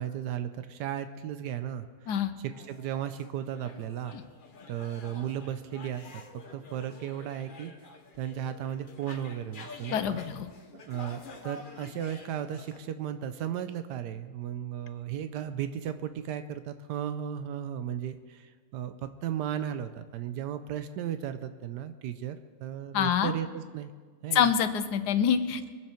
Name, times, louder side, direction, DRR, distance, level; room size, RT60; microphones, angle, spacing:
voice 1, 0.0-2.1 2.4-4.2 4.7-7.7 8.2-10.2 10.7-23.9 24.2-24.5, right 10 dB, 85° right, 10 dB, 1.2 m, -35 dB
sound 1, 2.5-12.8, left 3 dB, 35° left, 0.9 m, -49 dB
voice 2, 9.9-10.5 22.9-23.3 24.3-25.7, left 8 dB, 80° left, 10 dB, 1.3 m, -26 dB
22.5 x 7.6 x 4.4 m, 1.5 s
omnidirectional pair, 1.8 m